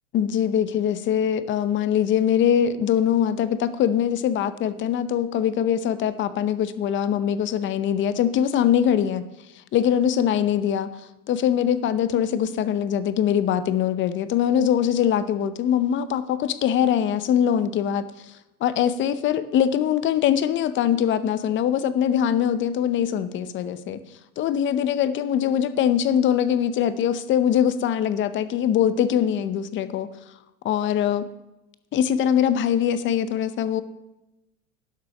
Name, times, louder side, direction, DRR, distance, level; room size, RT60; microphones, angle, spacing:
voice 1, 0.1-9.2 9.7-10.9 11.3-18.0 18.6-24.0 24.4-30.1 30.6-31.2 31.9-33.8, left 9 dB, 25° left, 14 dB, 0.7 m, -22 dB
11.5 x 6.1 x 5.9 m, 0.98 s
hypercardioid pair, 110°, 46 cm